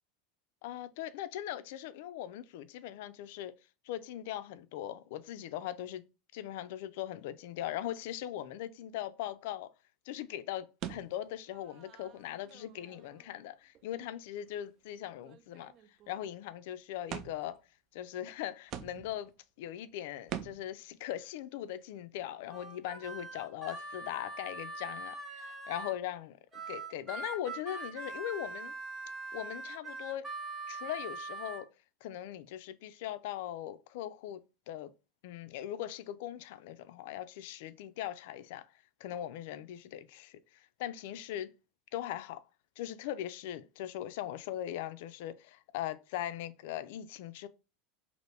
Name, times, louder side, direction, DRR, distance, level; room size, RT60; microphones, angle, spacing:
voice 1, 0.6-3.5 3.8-6.0 6.3-9.7 10.1-15.7 16.1-17.6 17.9-19.3 19.6-28.7 29.3-30.3 30.7-31.7 32.0-34.4 34.7-34.9 35.2-38.7 39.0-41.5 41.9-42.4 42.8-47.5, left 12 dB, 70° left, 0.3 m, -40 dB
sound 1, 10.8-13.4 13.7-13.8 14.5-14.6 14.9-15.0 15.2-16.2 17.1-17.6 18.3-18.4 18.7-19.3 20.3-20.8, right 10 dB, 45° right, 0.3 m, -45 dB
Harmonica, 22.5-26.0 26.5-31.6, right 2 dB, 20° right, 0.9 m, -42 dB
2.8 x 2.5 x 3.2 m
hypercardioid pair, 100°, 0 cm